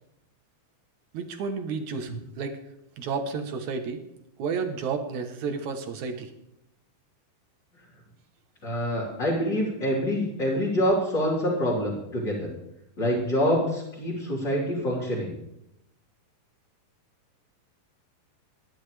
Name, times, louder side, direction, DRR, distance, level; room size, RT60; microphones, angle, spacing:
voice 1, 1.1-2.6 3.0-4.0 4.4-6.3, right 5 dB, 65° right, 6 dB, 2.1 m, -31 dB
voice 2, 8.6-12.5 13.0-15.3, equal, 30° left, -6 dB, 4.2 m, -26 dB
25.0 x 11.0 x 3.4 m, 0.81 s
omnidirectional pair, 4.6 m